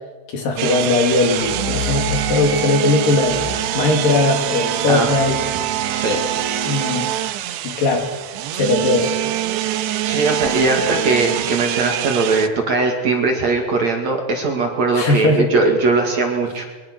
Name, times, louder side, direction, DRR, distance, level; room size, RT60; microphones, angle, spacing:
voice 1, 0.3-3.5 3.7-5.4 6.6-7.1 7.6-8.1 8.5-9.1 14.9-15.5, left 3 dB, 55° left, 3 dB, 4.3 m, -19 dB
sound 1, 0.6-12.5, right 13 dB, 85° right, 3.1 m, -24 dB
sound 2, 1.3-2.7 3.2-8.7 10.2-10.5, left 5 dB, 20° left, 5.2 m, -34 dB
voice 2, 5.9-6.2 10.1-16.7, right 3 dB, 45° right, 2 dB, 3.1 m, -19 dB
24.0 x 23.0 x 6.3 m, 1.3 s
omnidirectional pair, 4.8 m